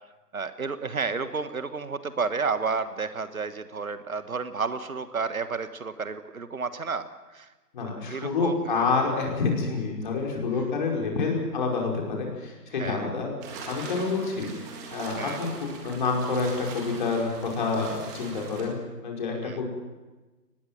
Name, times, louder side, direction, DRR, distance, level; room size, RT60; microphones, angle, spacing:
voice 1, 0.3-7.1 7.3-7.5 7.8-8.8 12.8-13.1 14.0-14.1 15.2-15.4 19.4-19.6, right 4 dB, 55° right, 11 dB, 1.5 m, -31 dB
voice 2, 7.7-13.3 13.7-14.5 14.9-19.6, left 4 dB, 30° left, 0 dB, 5.2 m, -28 dB
sound 1, 13.4-18.7, right 4 dB, 10° right, 1.9 m, -41 dB
24.5 x 20.0 x 7.7 m, 1.2 s
figure-of-eight pair, 160°, 49 cm